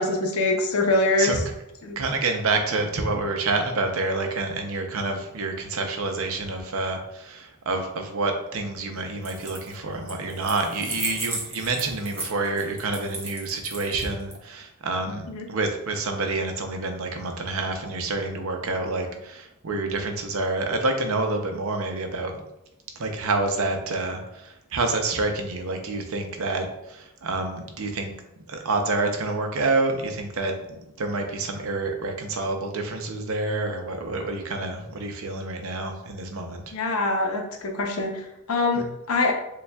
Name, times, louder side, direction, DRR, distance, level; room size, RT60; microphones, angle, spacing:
voice 1, 0.0-1.4 1.8-2.0 15.3-15.5 36.7-39.3, left 2 dB, 85° left, 3 dB, 0.7 m, -24 dB
voice 2, 2.0-22.4 23.0-28.1 28.5-36.6 38.7-38.9, right 3 dB, 75° right, 4 dB, 0.6 m, -28 dB
sound 1, 9.2-9.7 10.1-14.3, right 2 dB, 10° right, 0.9 m, -34 dB
6.6 x 2.3 x 2.2 m, 0.88 s
head